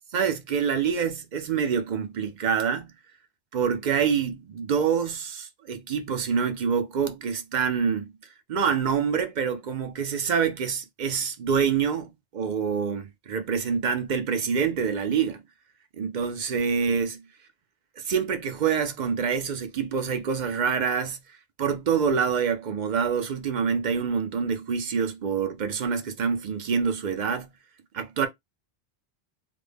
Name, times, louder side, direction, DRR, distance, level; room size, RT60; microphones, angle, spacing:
voice 1, 0.1-2.9 3.5-8.1 8.5-15.4 16.0-17.2 18.0-21.2 21.6-27.5 27.9-28.3, right 6 dB, 55° right, 0.6 m, -26 dB
3.3 x 2.1 x 3.4 m
omnidirectional pair, 1.2 m